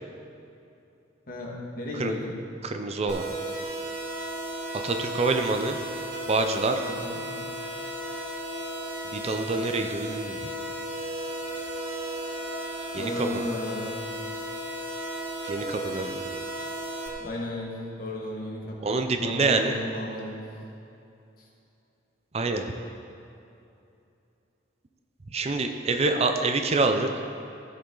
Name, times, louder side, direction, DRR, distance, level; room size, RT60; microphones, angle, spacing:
voice 1, 1.3-2.3 6.9-7.2 13.0-13.9 17.2-17.7 18.0-18.8 19.2-20.4 21.4-21.5, left 1 dB, 50° left, -3 dB, 1.7 m, -34 dB
voice 2, 2.6-3.2 4.8-5.8 6.3-6.8 9.1-10.5 12.9-13.5 15.4-16.2 18.8-19.7 22.3-22.6 25.3-27.1, right 3 dB, 35° right, 6 dB, 0.5 m, -26 dB
sound 1, 3.1-17.1, right 1 dB, 90° right, 2.0 m, -34 dB
15.5 x 5.5 x 3.9 m, 2.7 s
head